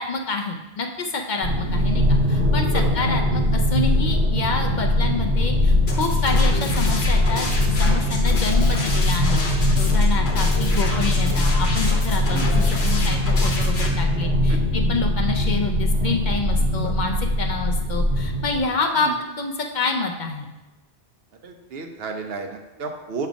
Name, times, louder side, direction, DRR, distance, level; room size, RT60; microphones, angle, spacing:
voice 1, 0.0-7.5 7.8-20.5, left 3 dB, 55° left, 3 dB, 0.6 m, -28 dB
sound 1, 1.4-18.6, left 1 dB, 45° right, 0.9 m, -21 dB
sound 2, 5.9-13.9, left 2 dB, 85° left, 1.2 m, -29 dB
voice 2, 12.3-12.6 14.5-14.6 16.8-16.9 19.0-19.2 21.4-23.3, right 4 dB, 70° right, 4 dB, 0.9 m, -32 dB
7.1 x 3.3 x 5.0 m, 1.1 s
omnidirectional pair, 1.0 m